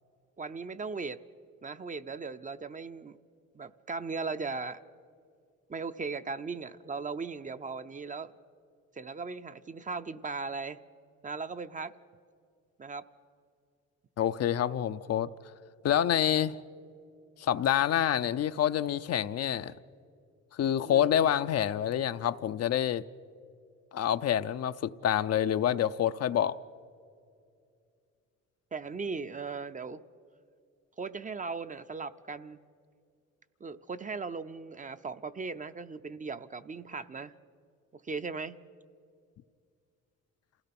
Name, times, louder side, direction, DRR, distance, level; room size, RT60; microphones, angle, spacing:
voice 1, 0.4-1.2 1.6-3.2 3.5-4.8 5.7-8.3 9.0-10.8 11.2-11.9 12.8-13.0 20.8-21.1 28.7-30.0 31.0-32.6 33.6-37.3 37.9-38.6, right 4 dB, 25° right, 0.6 m, -38 dB
voice 2, 14.2-15.3 15.8-16.6 17.4-19.7 20.6-23.0 23.9-26.6, left 10 dB, 55° left, 0.6 m, -27 dB
27.5 x 17.0 x 5.9 m
cardioid pair, 90°, 30 cm